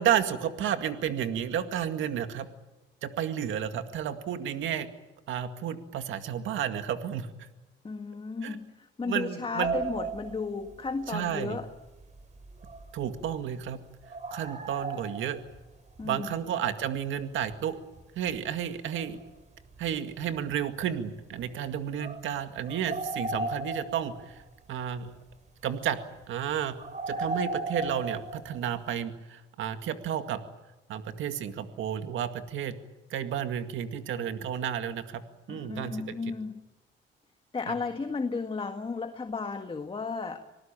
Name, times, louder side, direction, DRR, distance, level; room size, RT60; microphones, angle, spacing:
voice 1, 0.0-2.5 3.0-4.9 5.3-7.5 8.4-8.6 9.0-9.8 11.1-11.6 12.9-13.8 14.3-15.4 16.0-17.8 18.2-19.2 19.8-24.3 24.7-25.1 25.6-26.0 26.3-26.7 27.1-30.4 30.9-32.8 33.1-35.2 35.5-36.2 37.7-37.8, right 9 dB, 80° right, 8 dB, 2.1 m, -31 dB
voice 2, 7.8-11.7 16.0-16.5 35.5-36.5 37.5-40.4, left 4 dB, 25° left, 6 dB, 1.8 m, -34 dB
sound 1, 9.6-10.9 12.0-13.3 14.0-15.6 16.0-16.1 17.4-17.5 18.0-18.1 18.3-18.4 18.9-19.3 19.8-19.9 20.2-20.5 21.4-21.5 22.0-24.4 26.8-28.8, right 2 dB, 35° right, 4.1 m, -35 dB
26.0 x 19.0 x 8.9 m, 1.1 s
cardioid pair, 90°, 20 cm